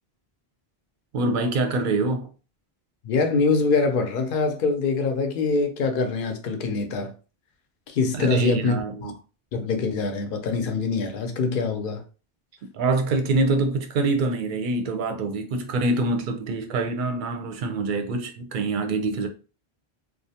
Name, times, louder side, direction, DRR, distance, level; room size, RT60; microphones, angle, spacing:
voice 1, 1.1-2.3 8.1-9.1 12.7-19.3, right 3 dB, 60° right, 0.6 m, -25 dB
voice 2, 3.0-7.1 7.9-8.8 9.0-9.1 9.5-12.0, left 4 dB, 60° left, 0.7 m, -24 dB
2.5 x 2.1 x 2.7 m
omnidirectional pair, 1.1 m